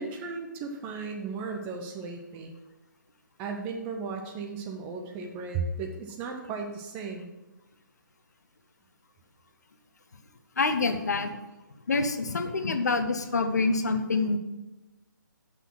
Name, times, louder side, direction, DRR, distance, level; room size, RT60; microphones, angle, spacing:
voice 1, 0.0-2.5 3.4-7.3, right 4 dB, 15° right, 3 dB, 0.6 m, -35 dB
voice 2, 10.6-11.4 11.9-14.4, left 3 dB, 55° left, 8 dB, 0.9 m, -26 dB
8.0 x 6.2 x 5.9 m, 1.0 s
figure-of-eight pair, 145°, 11 cm